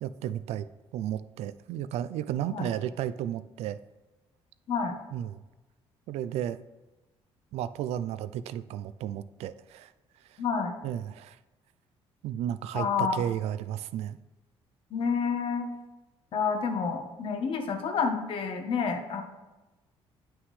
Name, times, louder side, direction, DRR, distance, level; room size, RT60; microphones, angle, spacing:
voice 1, 0.0-0.7 0.9-3.8 5.1-5.3 6.1-6.6 7.5-9.9 10.8-11.4 12.2-14.2, right 11 dB, 85° right, 14 dB, 0.4 m, -33 dB
voice 2, 10.4-10.7 12.7-13.2 14.9-15.7 16.3-19.2, left 5 dB, 55° left, 5 dB, 1.2 m, -29 dB
9.4 x 6.1 x 3.2 m, 1.1 s
cardioid pair, 120°, 11 cm